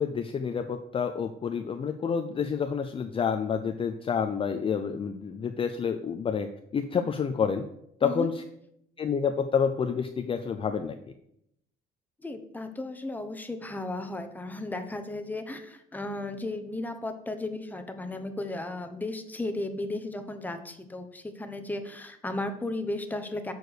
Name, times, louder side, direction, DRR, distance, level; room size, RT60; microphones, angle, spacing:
voice 1, 0.0-7.7 8.0-8.4 9.0-10.9, left 6 dB, 30° left, 6 dB, 0.5 m, -29 dB
voice 2, 12.2-23.5, left 2 dB, 10° left, 7 dB, 0.9 m, -35 dB
6.8 x 4.7 x 6.3 m, 0.76 s
cardioid pair, 110°, 17 cm